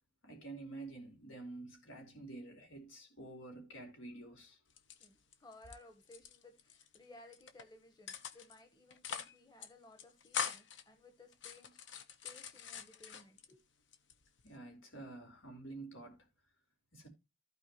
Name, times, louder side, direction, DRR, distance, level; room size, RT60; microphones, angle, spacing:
voice 1, 0.2-4.6 14.4-16.3 16.9-17.1, right 2 dB, 85° left, 4.5 m, -49 dB
sound 1, 4.7-5.7 6.0-7.0 7.3-7.6 8.1-8.6 8.9-9.3 9.6-9.7 10.0-10.8 11.3-13.5 13.9-14.5, left 7 dB, 70° left, 1.1 m, -43 dB
voice 2, 5.0-13.6, left 2 dB, 20° left, 1.4 m, -59 dB
15.0 x 5.0 x 3.1 m
head